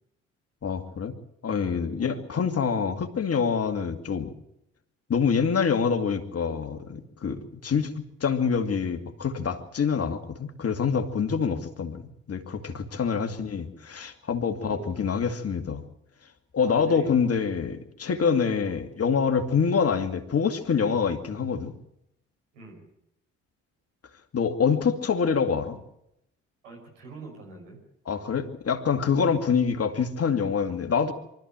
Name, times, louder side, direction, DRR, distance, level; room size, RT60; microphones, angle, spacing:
voice 1, 0.6-1.1 1.4-4.3 5.1-7.9 8.2-15.8 16.5-21.7 24.3-25.8 28.1-31.1, left 6 dB, 40° left, 7 dB, 2.4 m, -26 dB
voice 2, 12.9-13.4 14.6-15.0 16.6-17.1 18.4-18.8 22.5-22.8 26.6-27.8, right 3 dB, 85° right, -1 dB, 5.8 m, -44 dB
24.0 x 13.5 x 8.9 m, 0.81 s
hypercardioid pair, 45°, 36 cm